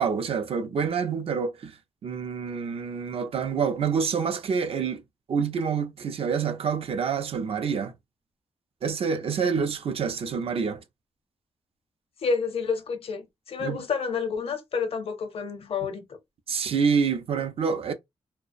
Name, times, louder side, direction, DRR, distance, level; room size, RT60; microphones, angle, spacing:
voice 1, 0.0-5.0 5.3-7.9 8.8-10.8 13.6-13.8 16.5-17.9, right 6 dB, 65° right, 0.5 m, -27 dB
voice 2, 12.2-16.2, left 5 dB, 60° left, 0.6 m, -29 dB
2.4 x 2.0 x 2.5 m
cardioid pair, 95°, 11 cm